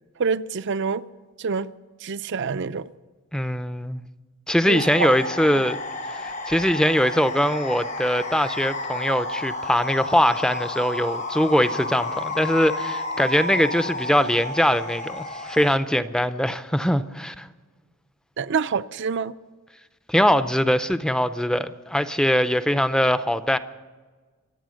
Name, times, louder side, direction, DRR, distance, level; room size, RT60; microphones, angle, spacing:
voice 1, 0.2-1.0 1.4-1.7 2.0-2.9 4.7-5.2 5.5-5.6 18.4-19.3, right 5 dB, 55° right, 0.5 m, -26 dB
voice 2, 3.3-4.0 4.5-5.8 6.1-17.5 20.1-23.6, equal, 5° left, 0.5 m, -22 dB
sound 1, 4.7-15.8, left 2 dB, 35° left, 0.8 m, -31 dB
25.5 x 9.0 x 6.4 m
head